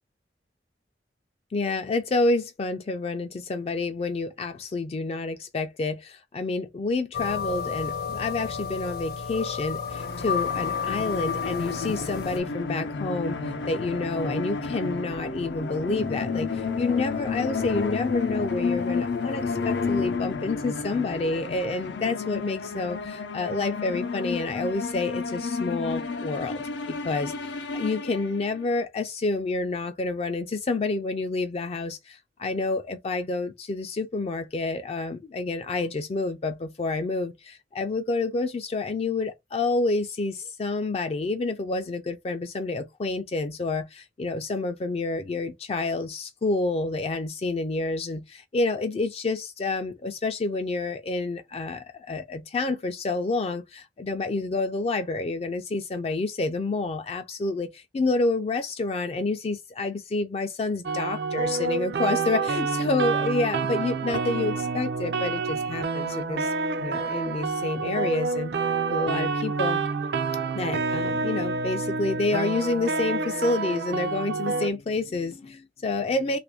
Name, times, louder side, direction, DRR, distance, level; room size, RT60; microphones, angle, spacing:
voice 1, 1.5-66.5 66.8-68.5 68.9-69.8 70.5-76.4, left 3 dB, 35° left, 0.3 m, -29 dB
sound 1, 7.1-12.4, left 6 dB, 60° left, 0.8 m, -31 dB
sound 2, 9.9-28.6, left 4 dB, 85° left, 0.6 m, -31 dB
sound 3, 60.8-74.7, right 4 dB, 65° right, 0.4 m, -28 dB
2.9 x 2.5 x 3.4 m
head